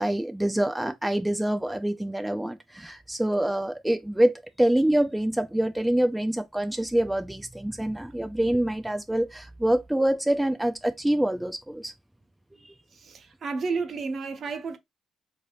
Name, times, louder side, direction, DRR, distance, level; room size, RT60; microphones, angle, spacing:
voice 1, 0.0-11.9 12.6-12.7, right 1 dB, 5° right, 0.4 m, -26 dB
voice 2, 12.9-14.8, right 4 dB, 55° right, 0.8 m, -31 dB
3.6 x 2.7 x 3.3 m
cardioid pair, 90°, 0 cm